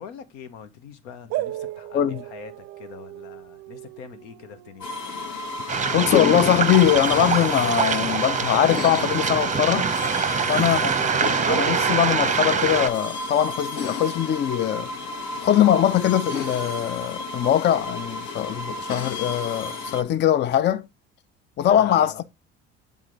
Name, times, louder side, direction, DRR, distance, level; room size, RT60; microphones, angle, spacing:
voice 1, 0.0-5.0 10.3-10.7 21.6-22.2, left 7 dB, 75° left, 1.0 m, -43 dB
sound 1, 1.3-6.7 9.0-10.4 10.7-10.8 11.4-13.6, right 16 dB, 55° right, 0.5 m, -36 dB
sound 2, 4.8-20.0, left 3 dB, 55° left, 1.5 m, -31 dB
Waves surf, 5.7-12.9, right 6 dB, 20° right, 0.7 m, -24 dB
voice 2, 5.9-10.0 10.5-10.9 11.5-14.9 15.4-20.8 21.6-22.2, left 10 dB, 35° left, 0.4 m, -21 dB
7.4 x 3.6 x 3.8 m
hypercardioid pair, 65°, 33 cm